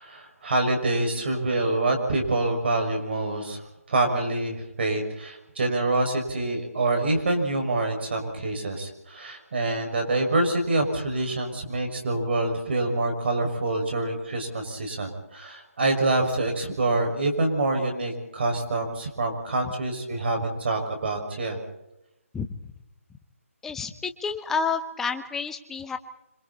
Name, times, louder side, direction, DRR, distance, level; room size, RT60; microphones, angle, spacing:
voice 1, 0.0-21.6, right 2 dB, 45° right, 4 dB, 6.3 m, -26 dB
voice 2, 22.3-22.7 23.6-26.0, left 5 dB, 5° left, 9 dB, 0.9 m, -30 dB
26.5 x 26.0 x 4.3 m, 0.87 s
hypercardioid pair, 165°, 8 cm